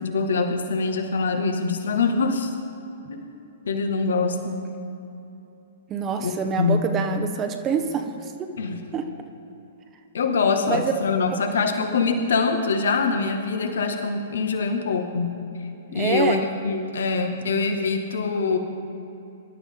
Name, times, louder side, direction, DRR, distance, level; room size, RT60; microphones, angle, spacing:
voice 1, 0.0-2.5 3.1-3.4 3.7-4.6 6.2-6.8 8.6-8.8 10.1-15.3 15.9-18.6, left 4 dB, 65° left, 5 dB, 1.9 m, -24 dB
voice 2, 5.9-8.5 8.9-9.1 10.7-10.9 11.3-11.4 15.9-16.4, right 6 dB, 25° right, 5 dB, 1.3 m, -26 dB
24.0 x 12.5 x 3.8 m, 2.9 s
figure-of-eight pair, 110°, 0 cm